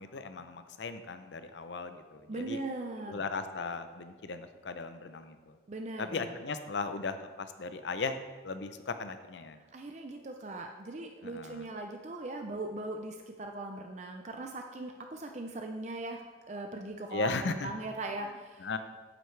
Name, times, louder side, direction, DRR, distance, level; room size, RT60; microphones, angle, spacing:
voice 1, 0.0-2.6 3.1-5.6 6.0-8.2 8.4-9.6 11.2-11.7 17.1-17.7 18.6-18.8, left 4 dB, 80° left, 10 dB, 0.6 m, -37 dB
voice 2, 2.3-3.2 5.7-6.4 9.7-16.2 16.5-18.7, right 2 dB, 40° right, 3 dB, 0.5 m, -39 dB
9.1 x 8.0 x 3.3 m, 1.4 s
head